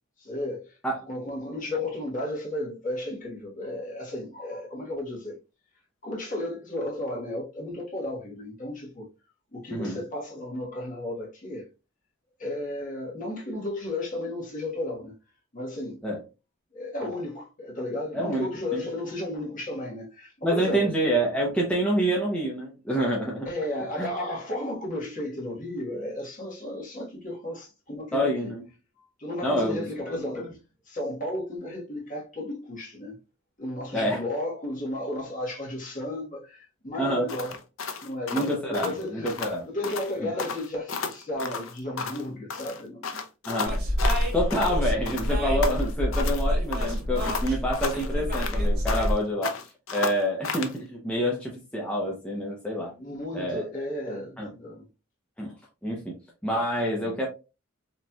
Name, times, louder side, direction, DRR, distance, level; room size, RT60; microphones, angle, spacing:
voice 1, 0.2-0.8 1.1-5.4 6.0-9.1 9.5-11.7 12.4-15.1 15.5-16.0 16.7-20.9 23.4-28.5 29.2-30.6 30.8-33.2 33.6-37.5 38.0-39.3 39.6-43.2 53.0-54.8, left 1 dB, 40° left, 1.3 m, -33 dB
voice 2, 18.1-18.5 18.7-18.8 20.4-23.5 24.0-24.1 28.1-28.6 29.4-30.5 33.9-34.2 37.0-37.3 38.3-39.6 40.2-40.3 43.5-43.8 44.3-49.5 49.9-52.9 53.3-53.6 54.4-54.5 55.4-55.5 55.8-56.1 56.4-57.3, equal, 5° left, 0.7 m, -27 dB
sound 1, 37.3-39.6 39.8-40.1 40.4-42.3 42.5-44.8 45.1-46.4 46.7-49.2 49.4-50.8, left 5 dB, 80° left, 0.6 m, -33 dB
sound 2, 43.6-49.1, equal, 45° right, 1.7 m, -27 dB
4.1 x 3.2 x 2.3 m
head